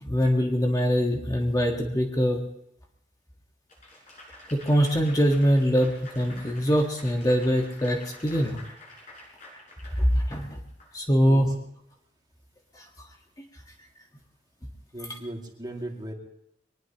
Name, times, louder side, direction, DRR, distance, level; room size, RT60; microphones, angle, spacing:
voice 1, 0.0-2.4 4.5-8.6 10.1-10.6 10.9-11.5 12.8-12.9, equal, 20° left, 1 dB, 1.5 m, -23 dB
Applause / Crowd, 3.7-10.9, left 1 dB, 45° left, 7.8 m, -48 dB
voice 2, 14.9-16.1, right 1 dB, 25° right, 1 dB, 2.3 m, -37 dB
23.5 x 19.5 x 2.9 m, 0.76 s
head